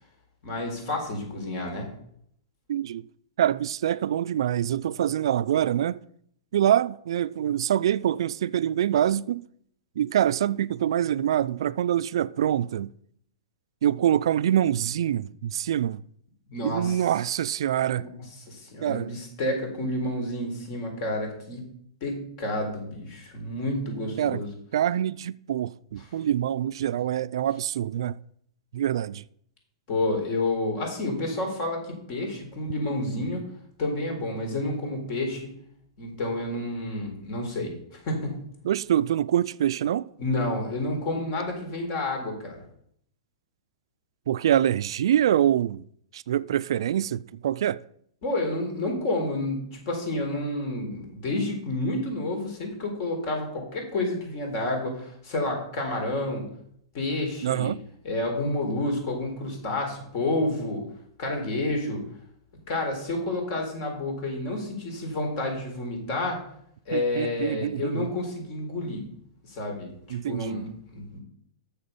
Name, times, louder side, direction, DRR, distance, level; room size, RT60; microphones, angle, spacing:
voice 1, 0.4-1.9 16.5-17.0 17.9-18.1 18.5-21.6 22.0-24.5 29.9-33.4 33.8-35.5 36.0-38.4 40.2-42.6 48.2-56.4 56.9-57.7 58.0-60.8 61.2-62.0 62.7-66.4 66.9-69.0 69.5-71.2, left 2 dB, 50° left, 4.0 m, -30 dB
voice 2, 2.7-3.1 3.4-6.0 6.5-9.4 10.0-12.9 13.8-16.0 16.6-18.1 18.8-19.1 24.2-24.4 24.7-28.2 28.7-29.2 38.6-40.1 44.3-45.8 46.1-47.8 57.4-57.8 66.9-68.1 70.1-70.7, right 10 dB, 70° right, 0.4 m, -25 dB
8.7 x 7.0 x 5.3 m
hypercardioid pair, 120°, 3 cm